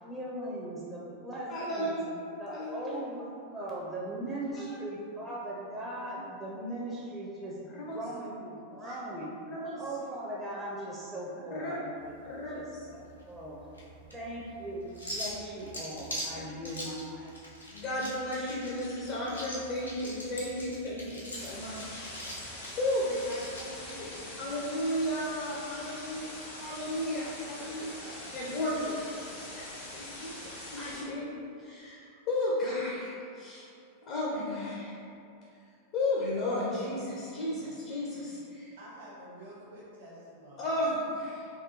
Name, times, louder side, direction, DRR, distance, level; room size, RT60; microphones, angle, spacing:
voice 1, 0.0-1.9 2.4-9.3 9.8-11.9 12.4-12.6 12.9-13.6 14.1-17.3, right 1 dB, 15° right, -6 dB, 0.5 m, -39 dB
voice 2, 1.5-2.1 2.5-3.0 4.6-4.7 7.7-8.0 8.9-9.0 9.5-9.8 11.5-11.7 12.2-12.7 16.4-16.5 17.7-22.1 22.8-33.7 34.0-34.9 35.9-38.7 40.6-41.5, left 1 dB, 40° left, -5 dB, 0.5 m, -34 dB
sound 1, 12.0-24.2, equal, 85° left, 0.6 m, -43 dB
sound 2, 21.3-31.0, left 1 dB, 60° left, 0.9 m, -44 dB
voice 3, 38.8-40.8, right 1 dB, 60° right, -7 dB, 0.8 m, -49 dB
3.6 x 2.2 x 3.0 m, 2.6 s
figure-of-eight pair, 90°, 0 cm